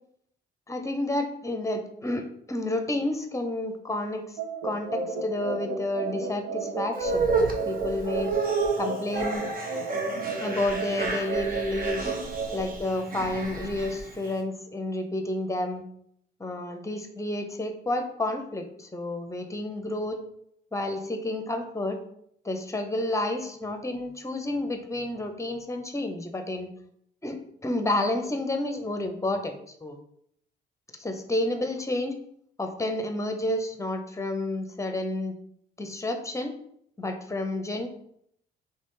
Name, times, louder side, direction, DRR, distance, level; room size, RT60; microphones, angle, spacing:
voice 1, 0.7-4.2 4.6-8.3 8.8-9.5 10.4-12.1 12.5-15.8 16.4-20.2 20.7-22.0 22.4-26.7 27.2-29.5 29.8-30.0 31.0-32.1 32.6-35.3 35.8-36.5 37.0-37.9, left 1 dB, 15° left, 6 dB, 0.8 m, -30 dB
sound 1, 4.4-12.6, right 4 dB, 70° right, 1.2 m, -33 dB
sound 2, 6.9-14.3, right 3 dB, 45° right, 1.0 m, -31 dB
4.1 x 3.4 x 3.7 m, 0.70 s
cardioid pair, 90°, 20 cm